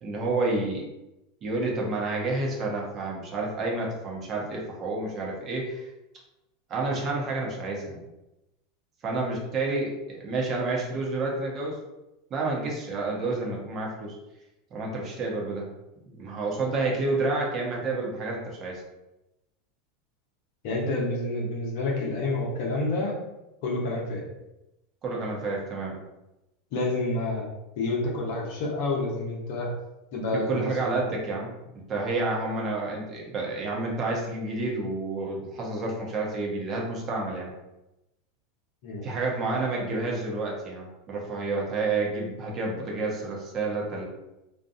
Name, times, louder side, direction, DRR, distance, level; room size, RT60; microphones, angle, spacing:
voice 1, 0.0-0.9 1.4-5.9 6.7-8.0 9.0-11.8 12.3-14.2 14.7-15.7 16.0-18.8 25.0-26.0 30.3-31.5 31.9-37.5 39.0-44.1, right 3 dB, 40° right, -2 dB, 0.9 m, -29 dB
voice 2, 20.6-23.2 23.6-24.3 26.7-27.4 27.8-29.7 30.1-31.0 38.8-39.1, left 2 dB, 60° left, -2 dB, 0.8 m, -28 dB
2.7 x 2.4 x 2.5 m, 0.95 s
hypercardioid pair, 90°, 0 cm